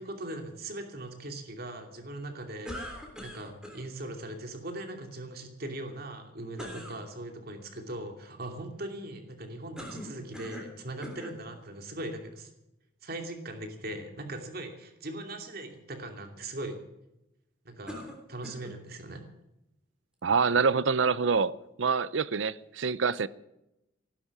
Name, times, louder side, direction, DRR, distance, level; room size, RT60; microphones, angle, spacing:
voice 1, 0.0-2.9 3.2-12.5 13.0-16.8 17.6-19.2, right 1 dB, 50° right, 5 dB, 2.7 m, -40 dB
sound 1, 2.6-3.8 6.6-7.0 9.8-10.7 11.0-11.4 12.2-12.3 17.9-18.8, equal, 5° right, 3.3 m, -42 dB
voice 2, 20.2-23.3, right 5 dB, 70° right, 18 dB, 0.6 m, -26 dB
16.0 x 12.0 x 7.2 m, 0.87 s
head